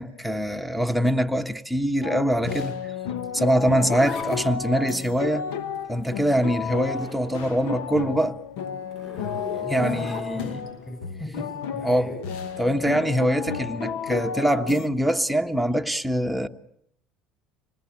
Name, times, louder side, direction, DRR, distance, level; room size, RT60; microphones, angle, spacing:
voice 1, 0.0-2.8 3.3-5.5 5.9-8.4 9.7-10.7 11.8-12.1 12.6-16.5, equal, ahead, 1.3 m, -23 dB
sound 1, 2.0-14.9, left 7 dB, 85° left, 1.2 m, -32 dB
Zipper (clothing), 3.2-7.7 8.0-10.7 12.3-12.6, left 2 dB, 55° left, 7.6 m, -41 dB
voice 2, 9.5-12.2, left 1 dB, 15° left, 7.5 m, -38 dB
27.0 x 20.0 x 8.7 m
supercardioid pair, 110°, 0 cm